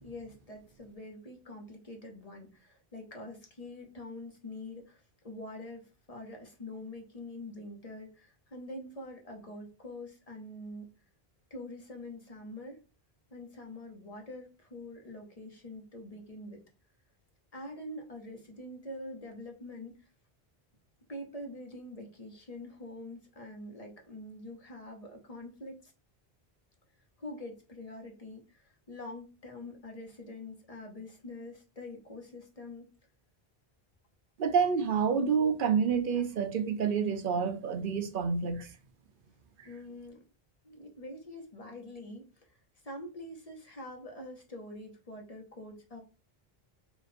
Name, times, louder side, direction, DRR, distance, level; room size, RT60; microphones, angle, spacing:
voice 1, 0.0-10.9 11.5-12.8 13.3-16.6 17.5-20.0 21.1-25.9 27.2-32.9 39.6-40.2 40.6-46.0, left 1 dB, 40° left, 1.1 m, -45 dB
voice 2, 34.4-38.7 39.6-39.7, right 6 dB, 60° right, 0.7 m, -28 dB
3.9 x 2.5 x 4.2 m
omnidirectional pair, 1.0 m